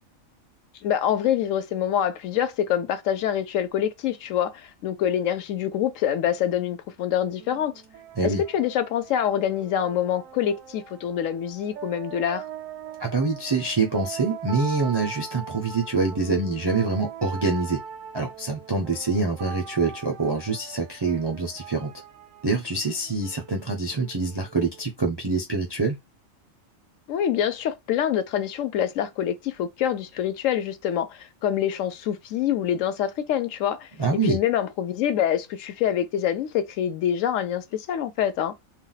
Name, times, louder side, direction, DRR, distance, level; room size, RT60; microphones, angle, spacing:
voice 1, 0.8-7.7 8.2-12.4 27.1-38.5, left 10 dB, 75° left, 0.9 m, -26 dB
sound 1, 7.4-24.8, right 7 dB, 80° right, 1.0 m, -41 dB
voice 2, 13.0-17.8 18.1-21.9 22.4-26.0 34.0-34.4, right 3 dB, 40° right, 0.3 m, -25 dB
2.5 x 2.1 x 3.9 m
omnidirectional pair, 1.4 m